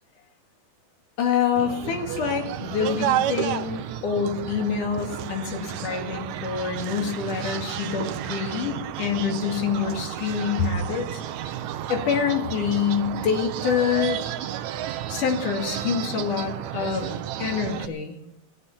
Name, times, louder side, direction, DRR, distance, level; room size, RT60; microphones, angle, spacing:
voice 1, 1.2-11.2 11.9-14.2 15.1-18.2, left 6 dB, 85° left, 3 dB, 3.8 m, -26 dB
sound 1, 1.6-17.9, right 11 dB, 75° right, 2.0 m, -32 dB
27.5 x 10.5 x 4.3 m, 0.74 s
omnidirectional pair, 3.6 m